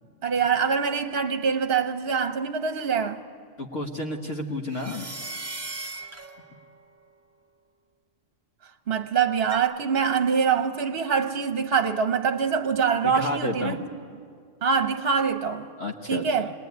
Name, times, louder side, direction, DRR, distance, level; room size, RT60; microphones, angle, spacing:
voice 1, 0.2-3.2 8.9-14.0 14.6-15.7 16.1-16.5, right 6 dB, 50° right, 1.0 m, -24 dB
voice 2, 3.6-5.1 13.0-13.9 15.8-16.5, left 2 dB, 60° left, 1.7 m, -31 dB
sound 1, 4.7-6.8 9.5-9.6, right 2 dB, 15° right, 0.9 m, -37 dB
24.5 x 19.5 x 9.4 m
omnidirectional pair, 1.4 m